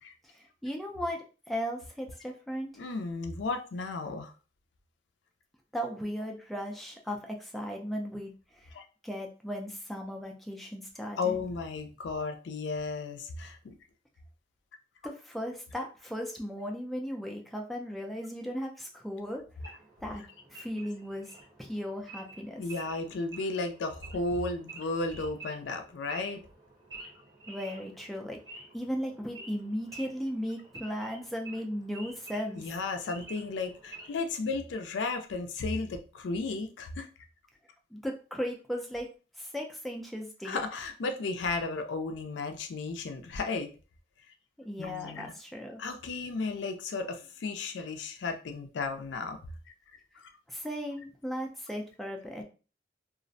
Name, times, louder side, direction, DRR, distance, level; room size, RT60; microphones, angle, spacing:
voice 1, 0.2-2.7 5.7-8.7 9.0-11.4 15.0-19.4 20.0-20.2 20.5-21.3 21.6-22.6 27.5-32.7 37.9-39.1 39.4-40.6 44.6-45.8 50.5-52.4, equal, ahead, 0 dB, 0.3 m, -36 dB
voice 2, 2.8-4.3 8.7-8.8 11.2-13.7 22.6-26.4 32.6-37.1 40.4-43.7 44.8-45.3 45.8-49.4, left 3 dB, 85° left, 6 dB, 0.4 m, -34 dB
Wild animals / Idling, 19.6-34.3, right 2 dB, 25° right, 0.7 m, -50 dB
2.4 x 2.0 x 2.5 m, 0.35 s
head